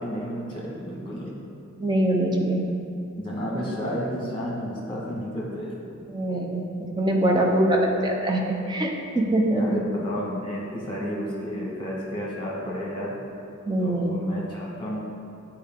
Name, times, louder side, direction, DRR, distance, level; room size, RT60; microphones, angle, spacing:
voice 1, 0.0-1.4 3.2-6.0 7.3-7.9 9.5-13.1 13.8-15.0, equal, 25° left, -4 dB, 1.5 m, -31 dB
voice 2, 1.8-2.7 6.1-6.6 7.0-8.4 8.7-9.8 13.7-14.2, right 1 dB, 20° right, 1 dB, 0.6 m, -23 dB
8.5 x 4.5 x 3.7 m, 2.7 s
head